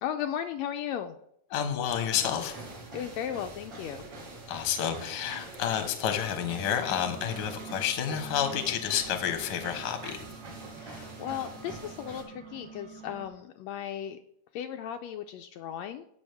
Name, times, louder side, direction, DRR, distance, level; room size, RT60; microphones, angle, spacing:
voice 1, 0.0-1.2 2.9-4.1 10.8-14.2 14.5-16.1, left 10 dB, 80° left, 6 dB, 1.7 m, -36 dB
voice 2, 1.5-2.6 4.5-10.2, left 9 dB, 50° left, 7 dB, 1.4 m, -30 dB
sound 1, 1.8-12.2, right 2 dB, 50° right, 2.9 m, -45 dB
sound 2, 6.1-13.3, right 6 dB, 70° right, 2.8 m, -48 dB
16.0 x 6.1 x 3.5 m, 0.73 s
omnidirectional pair, 3.3 m